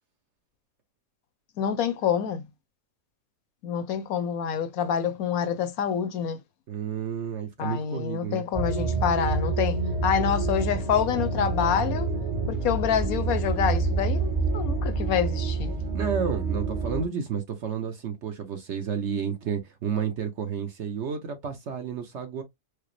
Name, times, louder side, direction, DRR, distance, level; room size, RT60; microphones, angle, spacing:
voice 1, 1.6-2.4 3.6-6.4 7.6-12.1 12.5-15.7, left 8 dB, 70° left, 1.0 m, -27 dB
voice 2, 6.7-8.4 15.9-22.4, right 7 dB, 55° right, 0.9 m, -31 dB
sound 1, 8.5-17.1, right 3 dB, 30° right, 0.6 m, -27 dB
4.8 x 2.0 x 3.0 m
omnidirectional pair, 1.7 m